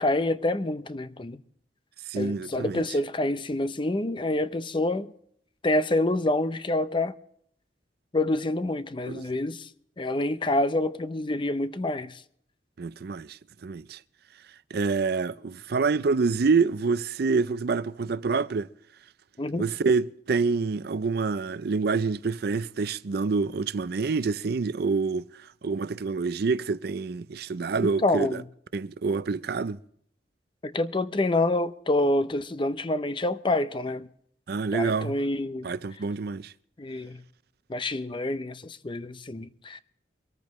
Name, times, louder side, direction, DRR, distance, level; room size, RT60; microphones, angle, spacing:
voice 1, 0.0-1.4 2.1-5.1 5.6-7.1 8.1-9.7 10.0-12.1 19.4-19.7 27.7-28.4 30.6-34.1 34.7-35.7 36.8-37.2 37.7-39.8, left 2 dB, 25° left, 0.6 m, -27 dB
voice 2, 2.1-2.8 9.1-9.3 12.8-14.0 14.7-18.7 19.6-25.2 25.6-28.4 28.7-29.8 34.5-35.2 35.6-36.5, right 4 dB, 60° right, 0.5 m, -27 dB
24.0 x 13.5 x 3.1 m
head